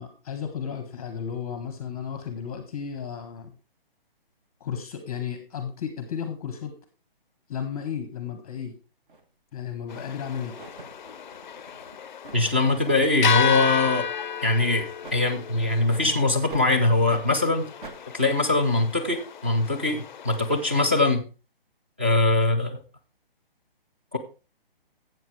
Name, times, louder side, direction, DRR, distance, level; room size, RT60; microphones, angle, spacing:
voice 1, 0.0-3.5 4.6-6.7 7.5-8.7 9.5-10.6, left 7 dB, 15° left, 8 dB, 0.8 m, -33 dB
sound 1, 9.1-9.2 9.9-10.2 10.6-14.0 14.4-14.6 15.0-15.2 15.8-16.0 16.5-16.7 17.1-17.3 17.8-18.0, right 3 dB, 55° right, 1.5 m, -45 dB
sound 2, 9.9-20.9, left 8 dB, 50° left, 0.4 m, -32 dB
voice 2, 12.3-14.1 14.4-17.7 18.1-21.2 22.0-22.8 24.1-24.2, left 2 dB, 10° right, 4 dB, 0.4 m, -22 dB
12.5 x 8.0 x 3.2 m, 0.33 s
hypercardioid pair, 170°, 30 cm